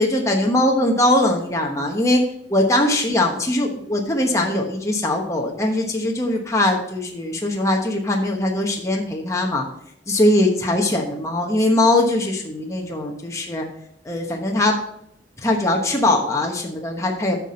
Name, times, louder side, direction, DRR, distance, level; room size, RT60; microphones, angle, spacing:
voice 1, 0.0-2.2 2.5-9.6 10.1-13.6 14.0-14.8 15.4-17.4, left 1 dB, 15° left, 0 dB, 1.1 m, -21 dB
9.0 x 6.1 x 4.3 m, 0.70 s
head